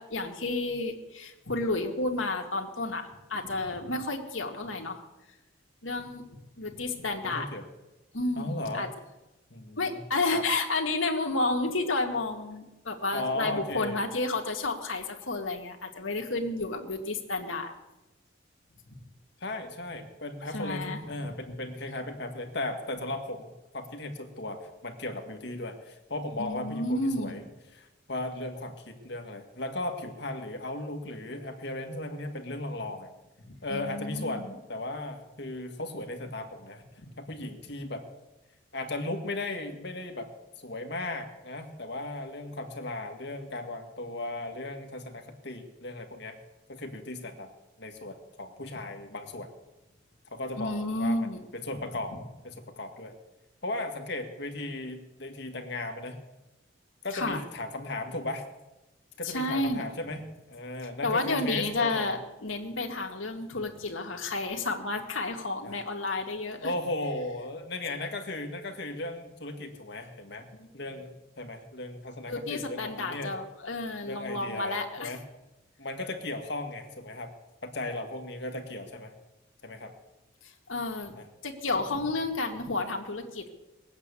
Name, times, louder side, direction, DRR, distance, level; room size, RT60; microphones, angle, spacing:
voice 1, 0.0-5.0 5.8-6.2 6.6-7.5 8.1-8.9 9.8-17.7 20.5-21.0 26.4-27.4 33.5-34.5 50.6-51.4 57.1-57.4 59.2-59.9 61.0-66.7 70.5-70.7 72.3-75.1 80.7-81.1 81.4-83.5, left 2 dB, 85° left, 3 dB, 2.1 m, -31 dB
voice 2, 7.2-7.7 8.4-8.9 9.5-10.0 10.3-10.4 13.1-14.0 19.4-23.5 23.7-27.4 27.7-33.1 33.6-34.4 34.7-36.8 37.2-38.0 38.7-40.3 40.6-46.4 46.7-49.5 50.3-51.2 51.5-52.1 52.4-53.1 53.6-56.2 57.0-58.4 59.2-62.1 65.6-65.8 66.6-70.5 70.7-73.4 74.0-75.2 75.8-77.3 77.6-79.1 79.6-79.9 81.2-81.3, left 2 dB, 60° left, 4 dB, 1.9 m, -36 dB
20.5 x 8.0 x 8.4 m, 1.0 s
head